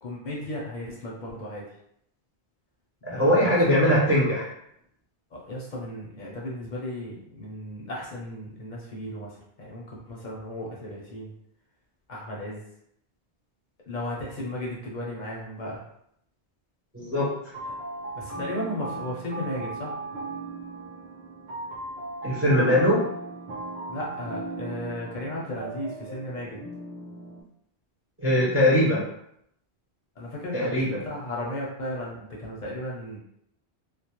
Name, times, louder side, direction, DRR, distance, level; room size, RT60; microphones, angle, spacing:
voice 1, 0.0-1.7 3.1-4.1 5.3-11.3 12.1-12.7 13.9-15.8 18.1-19.9 23.9-26.6 30.2-33.2, left 1 dB, 55° left, -4 dB, 0.6 m, -35 dB
voice 2, 3.0-4.5 16.9-17.3 22.2-23.0 28.2-29.0 30.5-31.0, equal, 25° right, -6 dB, 0.3 m, -21 dB
sound 1, 17.5-27.4, right 2 dB, 70° right, 1.0 m, -37 dB
2.3 x 2.1 x 2.8 m, 0.73 s
omnidirectional pair, 1.1 m